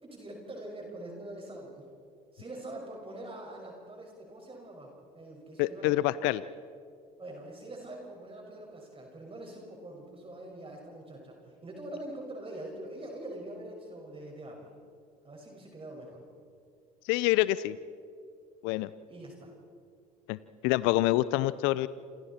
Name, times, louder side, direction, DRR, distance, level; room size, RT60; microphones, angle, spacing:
voice 1, 0.0-1.9 2.3-6.0 7.2-14.7 15.2-16.2 19.1-19.5 21.4-21.7, right 1 dB, 25° right, 0 dB, 5.8 m, -44 dB
voice 2, 5.6-6.4 17.0-17.8 18.6-18.9 20.3-20.4 20.6-21.9, left 17 dB, 65° left, 17 dB, 0.6 m, -26 dB
28.5 x 27.5 x 4.4 m, 2.4 s
hypercardioid pair, 65°, 21 cm